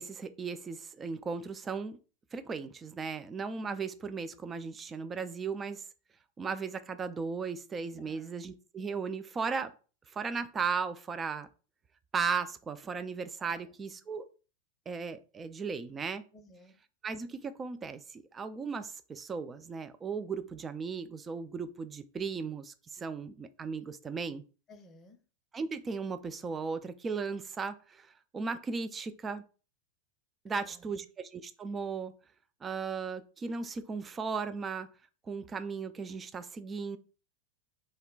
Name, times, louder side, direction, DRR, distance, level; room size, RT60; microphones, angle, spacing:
voice 1, 0.0-2.0 2.3-5.8 6.4-9.7 10.1-11.5 12.1-14.3 14.9-16.2 17.0-24.4 25.5-29.4 30.4-32.1 32.6-34.9 35.3-37.0, right 5 dB, 20° right, 0.3 m, -36 dB
voice 2, 8.0-8.3 13.4-13.7 16.3-16.7 24.7-25.2 30.5-31.1, left 1 dB, 20° left, 0.6 m, -57 dB
3.1 x 2.1 x 3.8 m
figure-of-eight pair, 90°, 0 cm